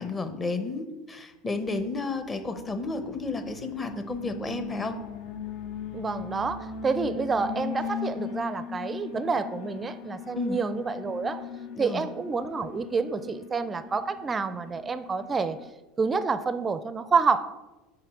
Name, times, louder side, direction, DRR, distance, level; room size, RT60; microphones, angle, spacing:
voice 1, 0.0-5.0 10.3-10.6 11.8-12.1, left 3 dB, 20° left, 8 dB, 1.0 m, -32 dB
Alarm, 2.3-15.7, left 6 dB, 60° left, 0.8 m, -39 dB
voice 2, 5.9-11.5 11.8-15.6 16.0-17.5, right 4 dB, 25° right, 13 dB, 0.4 m, -28 dB
5.8 x 5.0 x 6.1 m, 1.1 s
hypercardioid pair, 80°, 0 cm